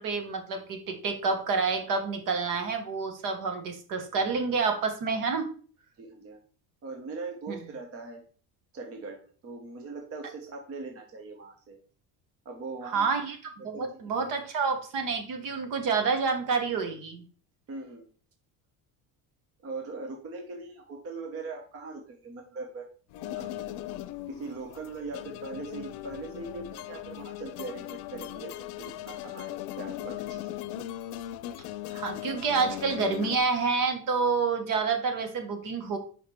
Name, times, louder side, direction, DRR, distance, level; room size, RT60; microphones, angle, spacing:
voice 1, 0.0-5.5 7.5-7.6 12.9-13.4 13.6-17.2 31.9-36.0, right 4 dB, 60° right, 6 dB, 1.3 m, -28 dB
voice 2, 6.0-6.4 6.8-8.2 8.7-11.8 12.4-13.1 13.6-13.8 14.3-14.4 17.7-18.1 19.6-22.9 23.3-30.6, right 3 dB, 40° right, 3 dB, 1.0 m, -41 dB
sound 1, 23.1-33.4, left 14 dB, 85° left, 0.6 m, -38 dB
5.0 x 4.9 x 4.4 m, 0.41 s
cardioid pair, 150°, 36 cm